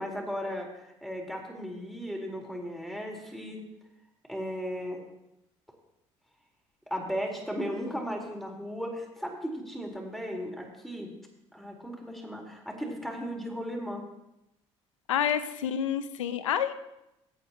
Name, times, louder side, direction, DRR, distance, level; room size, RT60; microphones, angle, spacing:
voice 1, 0.0-3.6 4.3-5.0 6.9-11.1 11.5-14.0, equal, ahead, 0 dB, 4.2 m, -36 dB
voice 2, 15.1-16.7, left 9 dB, 80° left, 12 dB, 0.7 m, -28 dB
25.0 x 8.7 x 3.0 m, 0.88 s
hypercardioid pair, 55°, 16 cm